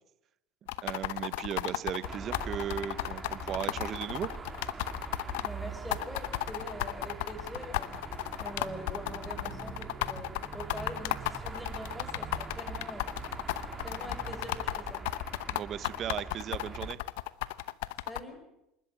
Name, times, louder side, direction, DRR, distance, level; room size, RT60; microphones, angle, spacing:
sound 1, 0.7-5.5 5.9-18.2, left 18 dB, 80° left, 0.8 m, -34 dB
voice 1, 0.8-4.3 15.5-17.0, right 9 dB, 45° right, 15 dB, 1.2 m, -36 dB
sound 2, 2.0-16.9, right 4 dB, 20° right, 2.7 m, -43 dB
voice 2, 5.4-8.0 8.4-13.1 13.8-15.1 18.0-18.4, equal, 5° left, 5 dB, 6.8 m, -44 dB
27.0 x 12.5 x 9.1 m, 0.86 s
supercardioid pair, 100°, 0 cm